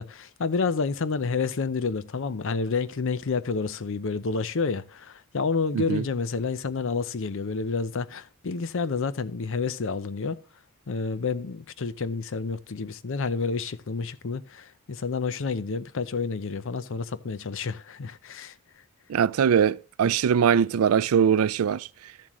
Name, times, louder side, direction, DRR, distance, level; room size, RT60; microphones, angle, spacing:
voice 1, 0.0-10.4 10.9-18.5, left 4 dB, 65° left, 0.6 m, -29 dB
voice 2, 19.1-21.9, right 7 dB, 80° right, 0.4 m, -22 dB
13.5 x 7.4 x 3.1 m
head